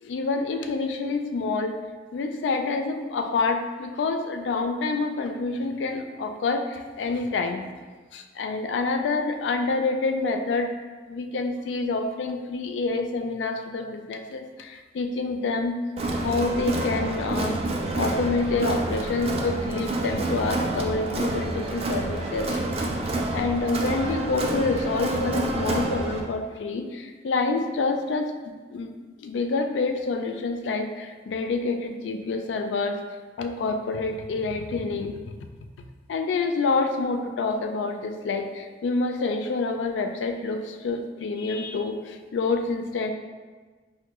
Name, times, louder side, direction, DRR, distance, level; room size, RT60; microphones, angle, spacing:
voice 1, 0.0-1.8 2.1-7.6 8.1-10.8 11.1-15.8 16.2-17.6 17.9-22.6 23.3-28.9 29.2-33.0 33.4-35.3 36.1-43.1, left 3 dB, 90° left, 5 dB, 0.3 m, -27 dB
Crowd, 16.0-26.2, right 2 dB, 35° right, 0.4 m, -28 dB
4.3 x 2.1 x 2.9 m, 1.4 s
head